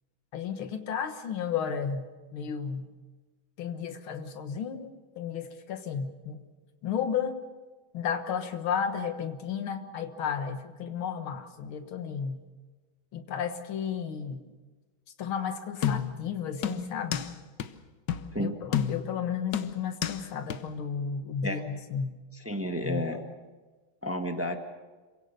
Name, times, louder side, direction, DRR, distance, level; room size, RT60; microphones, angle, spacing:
voice 1, 0.3-2.9 3.6-6.4 6.8-7.4 7.9-12.4 13.1-14.5 15.2-17.3 18.4-22.2 22.8-23.0, left 7 dB, 85° left, 8 dB, 2.2 m, -33 dB
sound 1, 15.8-16.3 16.6-17.3 17.6-17.7 18.1-18.3 18.7-19.2 19.5-20.2 20.5-20.6, left 9 dB, 65° left, 1.5 m, -30 dB
voice 2, 22.3-23.2 24.0-24.6, equal, 10° right, 5 dB, 1.2 m, -31 dB
26.5 x 17.0 x 6.7 m, 1.3 s
omnidirectional pair, 2.2 m